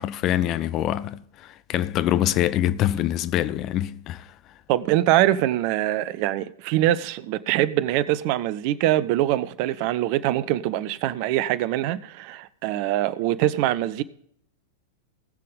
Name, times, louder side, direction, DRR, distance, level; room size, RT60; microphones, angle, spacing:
voice 1, 0.0-4.3, left 12 dB, 35° left, 0.6 m, -25 dB
voice 2, 4.7-14.0, right 14 dB, 45° right, 0.6 m, -23 dB
19.5 x 7.6 x 3.5 m
figure-of-eight pair, 95°, 0 cm